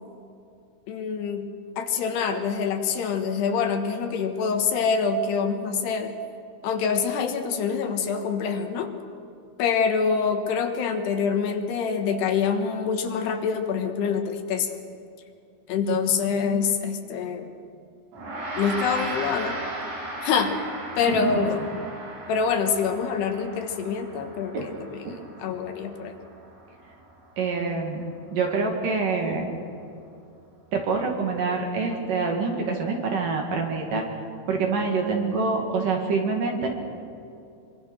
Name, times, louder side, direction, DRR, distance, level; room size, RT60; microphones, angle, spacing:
voice 1, 0.9-1.5 1.8-6.1 6.6-8.9 9.6-14.7 15.7-17.6 18.6-19.6 20.2-20.6 21.0-21.6 22.3-26.2, left 6 dB, 70° left, 6 dB, 3.3 m, -25 dB
Gong, 18.1-27.7, right 1 dB, 90° right, 7.5 m, -37 dB
voice 2, 21.1-21.6 24.5-24.7 25.1-25.2 27.4-28.0 28.3-29.5 30.7-34.0 34.5-36.7, right 4 dB, 55° right, 2 dB, 3.6 m, -26 dB
24.5 x 24.5 x 6.3 m, 2.5 s
omnidirectional pair, 5.1 m